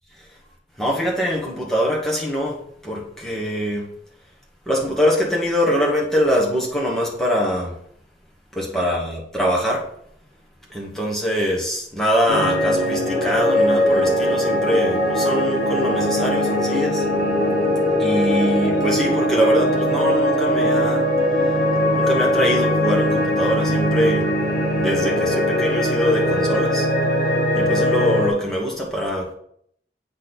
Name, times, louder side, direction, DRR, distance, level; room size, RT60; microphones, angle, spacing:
voice 1, 0.8-3.9 4.7-7.8 8.5-9.9 10.7-17.0 18.0-21.1 21.4-21.6 21.9-24.3 24.8-26.9 27.5-29.3, equal, ahead, -3 dB, 1.2 m, -23 dB
sound 1, 12.3-28.3, equal, 55° left, 2.9 m, -20 dB
8.2 x 4.2 x 4.0 m, 0.68 s
head